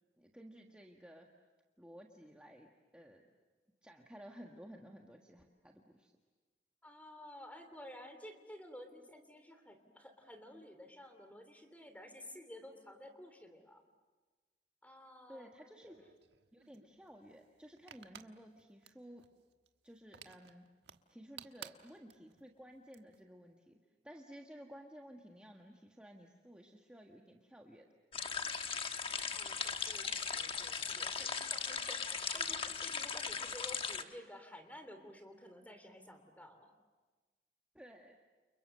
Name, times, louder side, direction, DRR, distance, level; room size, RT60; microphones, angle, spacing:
voice 1, 0.2-1.3 1.8-3.3 3.8-6.1 15.3-16.1 16.5-19.2 19.8-20.7 21.1-23.8 24.0-27.9 37.7-38.1, equal, 5° right, 1 dB, 1.5 m, -55 dB
voice 2, 6.8-13.8 14.8-15.8 29.3-36.7, left 1 dB, 10° left, 7 dB, 3.1 m, -53 dB
sound 1, 15.8-23.2, right 8 dB, 80° right, 1.4 m, -57 dB
sound 2, 28.1-34.0, left 6 dB, 30° left, 1.2 m, -38 dB
30.0 x 29.5 x 6.7 m, 1.3 s
head